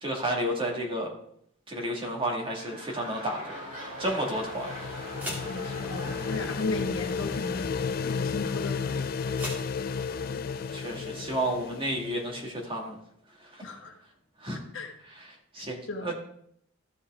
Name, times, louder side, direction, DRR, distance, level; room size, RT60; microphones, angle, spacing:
voice 1, 0.0-1.1 1.7-3.4 4.0-4.7 10.1-13.0 13.5-13.6 14.4-14.6 15.1-16.1, right 1 dB, 25° right, -2 dB, 2.0 m, -32 dB
sound 1, 2.1-8.5 9.2-9.3, equal, 40° right, 4.3 m, -42 dB
sound 2, 2.9-10.7, equal, 10° right, 2.1 m, -45 dB
sound 3, 3.7-12.5, left 5 dB, 45° left, 0.3 m, -33 dB
voice 2, 5.4-9.1 13.6-13.9 14.7-14.9 15.9-16.1, left 3 dB, 70° left, 3 dB, 1.3 m, -35 dB
14.0 x 5.6 x 3.7 m, 0.69 s
head